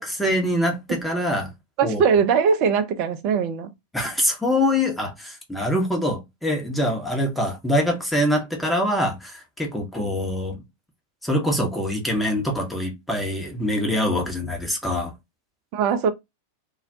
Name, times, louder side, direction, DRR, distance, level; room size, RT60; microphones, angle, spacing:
voice 1, 0.0-1.5 1.8-2.0 3.9-10.6 11.2-15.1, left 1 dB, 5° left, 0.8 m, -24 dB
voice 2, 1.8-3.7 15.7-16.1, right 6 dB, 40° right, 0.4 m, -20 dB
2.2 x 2.1 x 2.6 m
figure-of-eight pair, 90°, 0 cm